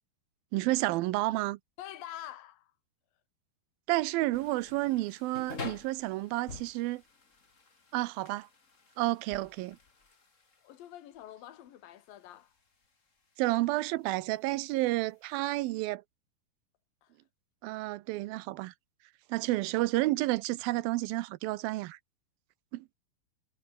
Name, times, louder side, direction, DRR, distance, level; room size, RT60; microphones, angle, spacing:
voice 1, 0.5-1.6 3.9-7.0 7.9-8.5 9.0-9.8 13.4-16.0 17.6-18.7 19.3-22.0 22.7-22.9, right 18 dB, 80° right, 2.4 m, -30 dB
voice 2, 1.8-2.7 10.6-12.5 17.0-17.1, left 12 dB, 70° left, 3.6 m, -46 dB
sound 1, 4.3-15.8, left 4 dB, 25° left, 2.1 m, -50 dB
omnidirectional pair, 4.4 m